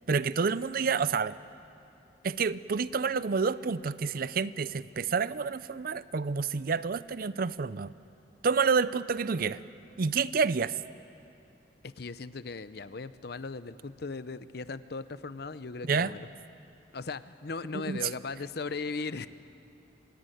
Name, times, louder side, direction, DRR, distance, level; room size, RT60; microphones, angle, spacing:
voice 1, 0.1-1.4 2.2-7.9 8.4-9.6 10.0-10.8 15.9-16.1 17.7-18.1, right 5 dB, 55° right, 17 dB, 0.5 m, -29 dB
voice 2, 11.8-16.3 16.9-19.3, left 4 dB, 60° left, 14 dB, 0.7 m, -38 dB
26.0 x 16.5 x 9.2 m, 2.8 s
head